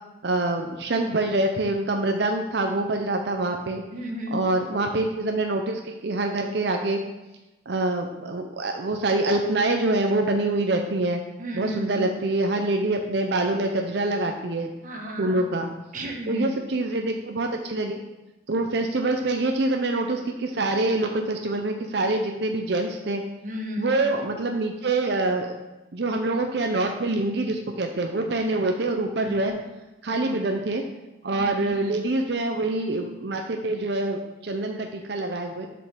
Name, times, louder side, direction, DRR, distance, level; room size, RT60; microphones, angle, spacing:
voice 1, 0.2-3.8 4.3-7.0 7.7-11.2 11.5-14.7 15.2-15.7 16.3-18.0 18.5-23.2 23.8-25.5 25.9-29.5 30.0-30.8 31.2-35.7, right 2 dB, 60° right, 3 dB, 0.6 m, -25 dB
voice 2, 3.9-4.4 11.4-12.1 14.8-15.5 15.9-16.5 23.4-24.0 29.2-29.5 31.3-31.8, equal, 40° right, 1 dB, 1.2 m, -33 dB
6.3 x 5.2 x 6.1 m, 1.0 s
head